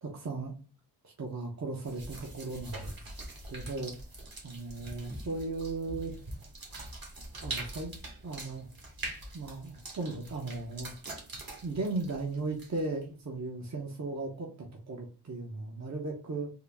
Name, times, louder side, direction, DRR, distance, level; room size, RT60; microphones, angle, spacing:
voice 1, 0.0-0.6 1.0-3.0 3.5-3.9 4.4-6.1 7.4-7.9 8.2-8.7 9.3-10.9 11.6-14.5 14.9-16.5, right 3 dB, 45° right, 0 dB, 0.8 m, -36 dB
sound 1, 1.8-13.0, right 2 dB, 60° right, 1.3 m, -44 dB
3.7 x 2.0 x 3.3 m, 0.34 s
wide cardioid pair, 70°, 40 cm